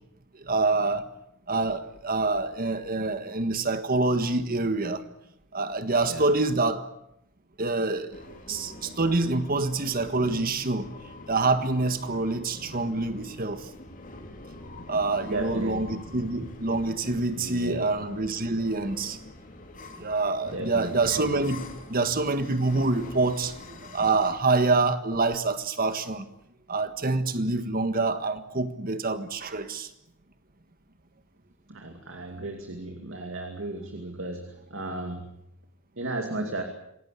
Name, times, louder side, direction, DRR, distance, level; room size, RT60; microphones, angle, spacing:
voice 1, 0.4-1.1 1.5-5.0 5.5-6.8 7.6-8.1 8.5-10.9 11.3-13.7 14.9-19.2 20.0-26.2 26.7-29.9, right 3 dB, 45° right, 10 dB, 1.6 m, -26 dB
sound 1, 8.1-24.3, left 2 dB, 40° left, 3.2 m, -44 dB
voice 2, 15.3-16.0 17.4-17.9 20.5-20.9 31.7-35.3 36.0-36.6, right 2 dB, 65° right, 4 dB, 2.6 m, -34 dB
26.5 x 17.5 x 8.4 m, 0.79 s
head